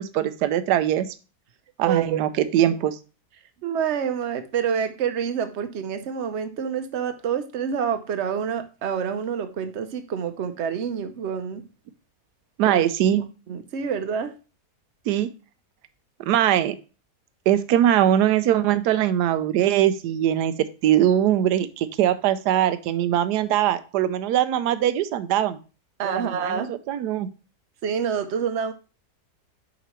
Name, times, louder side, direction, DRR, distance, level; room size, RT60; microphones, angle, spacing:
voice 1, 0.1-1.1 1.8-2.9 12.6-13.2 15.1-15.3 16.3-16.7 17.5-25.6 26.0-27.3, right 11 dB, 85° right, 12 dB, 1.2 m, -21 dB
voice 2, 1.8-2.2 3.6-11.6 12.7-12.8 13.5-14.3 26.0-26.7 27.8-28.7, right 7 dB, 55° right, 9 dB, 0.9 m, -27 dB
6.7 x 5.0 x 3.0 m, 0.33 s
omnidirectional pair, 1.7 m